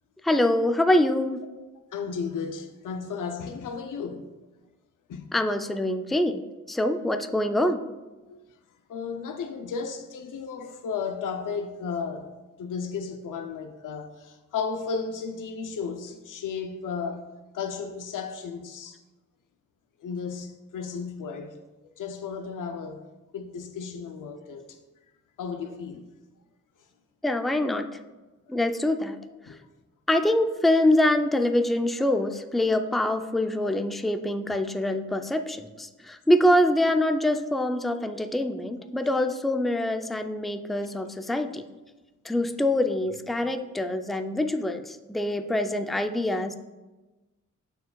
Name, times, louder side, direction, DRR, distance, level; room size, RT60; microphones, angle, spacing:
voice 1, 0.2-1.4 5.3-6.4 6.7-7.8 27.2-27.9 28.5-29.2 30.1-41.6 42.2-46.6, left 1 dB, ahead, 0.4 m, -24 dB
voice 2, 1.9-4.3 5.1-5.3 5.6-5.8 8.3-8.4 8.9-12.3 12.6-17.3 17.5-19.0 20.0-23.0 23.3-24.8 25.4-26.1 27.5-27.6 28.5-28.6 29.5-29.6 33.7-33.8 43.4-43.5, left 5 dB, 85° left, 0.6 m, -34 dB
12.5 x 4.6 x 2.3 m
cardioid pair, 65°, 31 cm